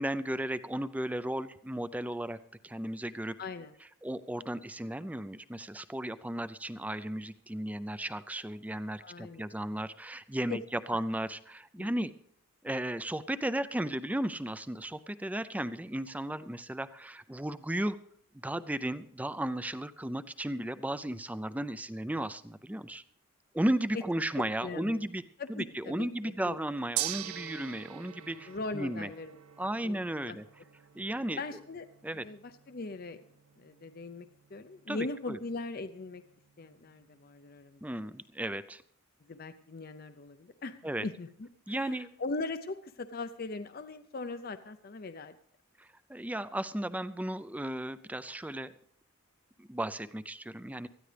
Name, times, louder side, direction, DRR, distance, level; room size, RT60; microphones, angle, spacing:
voice 1, 0.0-2.4 2.6-3.3 4.0-12.1 12.6-18.0 18.4-23.0 23.5-25.2 25.5-29.1 29.6-30.4 30.9-31.4 32.0-32.2 34.9-35.4 37.8-38.8 40.8-41.1 41.7-42.1 45.8-48.7 49.6-50.9, right 1 dB, 5° right, 13 dB, 0.4 m, -35 dB
voice 2, 3.4-3.7 9.0-9.5 10.5-10.6 10.9-11.0 11.8-11.9 24.6-25.1 25.4-26.6 28.5-30.4 31.4-31.9 32.1-33.2 33.6-36.2 36.6-37.8 39.2-45.3, left 3 dB, 45° left, 9 dB, 0.6 m, -40 dB
Gong, 27.0-37.2, right 14 dB, 85° right, 0.5 m, -44 dB
19.5 x 14.0 x 3.3 m, 0.69 s
head